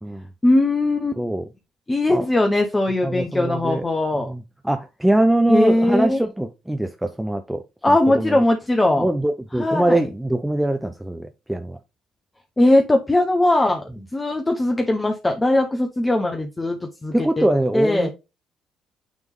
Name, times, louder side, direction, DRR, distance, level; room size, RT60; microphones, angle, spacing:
voice 1, 0.4-1.2 1.9-4.3 5.5-6.2 7.8-9.1 9.6-10.0 12.6-17.4 17.7-18.1, left 1 dB, 20° left, 0.9 m, -20 dB
voice 2, 1.2-1.5 2.1-2.2 3.0-3.8 4.2-8.4 9.0-11.8 17.1-18.1, right 1 dB, 5° right, 0.7 m, -23 dB
9.2 x 3.5 x 3.2 m
figure-of-eight pair, 45°, 0 cm